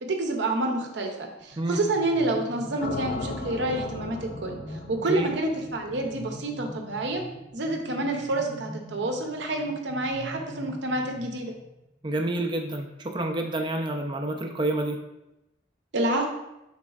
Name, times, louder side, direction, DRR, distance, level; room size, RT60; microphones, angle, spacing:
voice 1, 0.0-7.2 7.5-11.5 15.9-16.3, right 2 dB, 65° right, 3 dB, 0.6 m, -28 dB
sound 1, 1.4-11.9, equal, 15° left, 0.7 m, -44 dB
sound 2, 2.8-6.9, left 3 dB, 55° left, 0.4 m, -37 dB
voice 2, 12.0-15.0, right 2 dB, 25° right, 3 dB, 0.4 m, -28 dB
5.1 x 4.1 x 2.4 m, 0.92 s
head